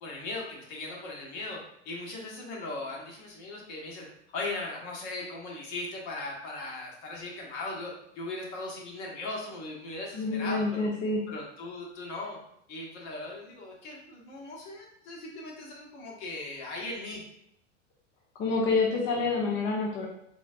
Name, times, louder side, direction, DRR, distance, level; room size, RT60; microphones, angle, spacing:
voice 1, 0.0-4.1 4.3-10.9 11.3-12.4 12.7-17.2, left 2 dB, 50° left, -2 dB, 1.4 m, -38 dB
voice 2, 10.1-11.2 18.4-20.1, left 3 dB, 30° left, -2 dB, 0.8 m, -27 dB
4.1 x 3.1 x 2.5 m, 0.73 s
hypercardioid pair, 95°, 37 cm